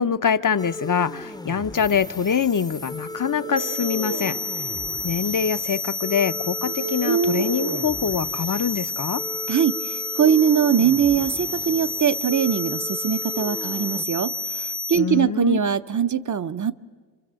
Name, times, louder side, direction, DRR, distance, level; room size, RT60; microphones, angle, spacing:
voice 1, 0.0-4.4 5.0-9.2 15.0-15.6, left 7 dB, 45° left, 11 dB, 0.7 m, -24 dB
sound 1, 0.6-14.1, left 2 dB, 10° left, 0.7 m, -37 dB
sound 2, 3.0-4.3 5.8-5.9 6.5-7.9, right 5 dB, 70° right, 1.2 m, -28 dB
sound 3, 3.6-15.0, left 4 dB, 85° left, 1.6 m, -30 dB
voice 2, 9.5-16.7, right 8 dB, 45° right, 13 dB, 0.8 m, -22 dB
28.5 x 25.0 x 7.5 m, 1.5 s
wide cardioid pair, 85°, 44 cm